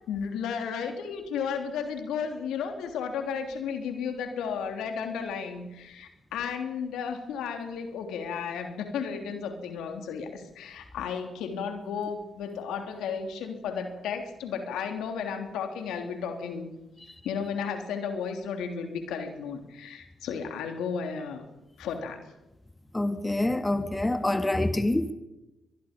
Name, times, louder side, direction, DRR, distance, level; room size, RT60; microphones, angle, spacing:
voice 1, 0.1-16.7 17.2-21.4 21.8-22.2, left 6 dB, 80° left, 3.3 m, -33 dB
voice 2, 22.9-25.1, left 1 dB, 15° left, 1.9 m, -26 dB
23.0 x 22.5 x 5.3 m
supercardioid pair, 50°, 0 cm